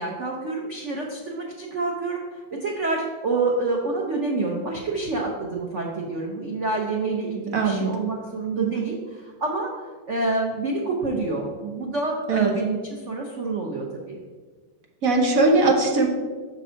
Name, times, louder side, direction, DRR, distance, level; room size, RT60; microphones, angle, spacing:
voice 1, 0.0-14.2, right 3 dB, 90° right, -1 dB, 0.6 m, -28 dB
voice 2, 7.5-7.9 8.6-8.8 12.3-12.5 15.0-16.1, right 3 dB, 55° right, 1 dB, 1.0 m, -20 dB
6.1 x 5.3 x 4.4 m, 1.4 s
omnidirectional pair, 2.3 m